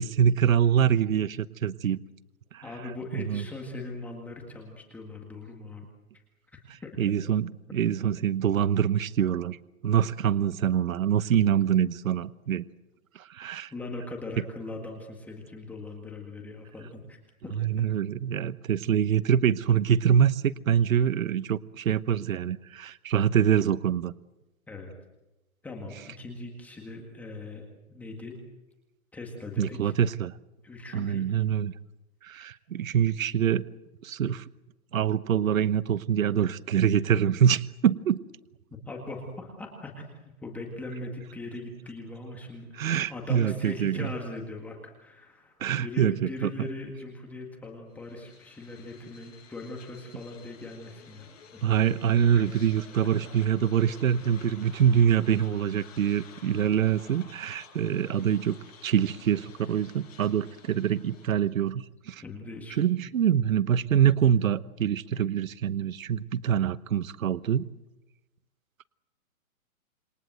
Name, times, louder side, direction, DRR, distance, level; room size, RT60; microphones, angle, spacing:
voice 1, 0.0-2.0 2.5-2.6 3.1-3.4 7.0-9.6 9.8-12.6 13.1-13.7 17.6-24.1 29.6-30.3 30.9-31.7 32.2-33.6 34.0-34.4 34.9-38.2 42.8-44.1 45.6-46.7 51.6-62.2 62.8-67.7, right 9 dB, 70° right, 16 dB, 1.0 m, -25 dB
voice 2, 2.6-5.9 6.5-7.0 13.7-17.2 17.4-17.6 24.7-24.9 25.6-28.4 29.1-29.9 30.6-31.3 38.9-40.1 40.4-51.3 51.5-51.6 52.3-52.4 62.2-62.9 65.1-65.2, left 2 dB, 5° left, 0 dB, 1.8 m, -40 dB
sound 1, 48.0-61.5, left 6 dB, 60° left, 6.4 m, -52 dB
27.5 x 23.0 x 7.8 m, 1.0 s
hypercardioid pair, 170°, 43 cm